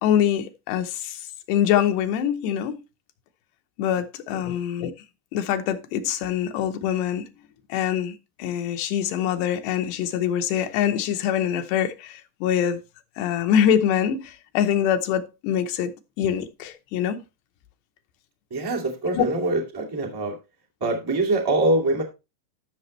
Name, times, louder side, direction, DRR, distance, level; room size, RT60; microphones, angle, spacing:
voice 1, 0.0-2.8 3.8-4.9 5.3-7.3 7.7-12.8 13.2-17.2 19.1-19.3, left 9 dB, 90° left, 3.1 m, -24 dB
voice 2, 18.5-20.4 20.8-22.0, right 2 dB, 15° right, 0.8 m, -24 dB
13.0 x 6.1 x 3.2 m
omnidirectional pair, 4.7 m